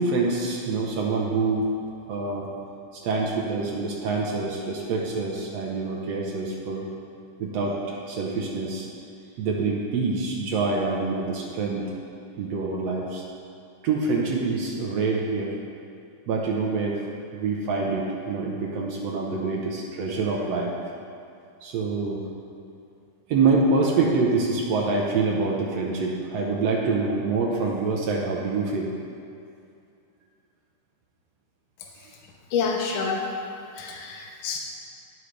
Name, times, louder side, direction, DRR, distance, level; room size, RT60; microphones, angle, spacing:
voice 1, 0.0-1.7 2.1-2.5 2.9-6.9 7.4-8.9 9.4-11.9 12.4-13.2 13.8-15.6 16.3-17.0 17.3-20.7 21.6-22.2 23.3-28.9 32.0-32.1, right 3 dB, 70° right, -2 dB, 1.8 m, -26 dB
voice 2, 32.5-33.3 33.8-34.6, left 5 dB, 85° left, -1 dB, 1.1 m, -27 dB
17.0 x 5.7 x 3.3 m, 2.5 s
omnidirectional pair, 3.8 m